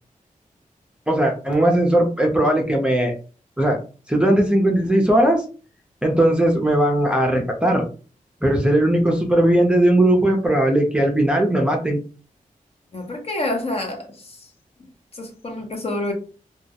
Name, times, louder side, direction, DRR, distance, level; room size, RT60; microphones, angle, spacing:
voice 1, 1.1-3.1 3.6-3.8 4.1-5.4 6.0-7.9 8.4-12.0, right 1 dB, 5° right, 0 dB, 0.5 m, -18 dB
voice 2, 12.9-14.5 15.1-16.1, left 2 dB, 45° left, 2 dB, 0.7 m, -28 dB
2.3 x 2.0 x 2.7 m, 0.36 s
wide cardioid pair, 100°, 14 cm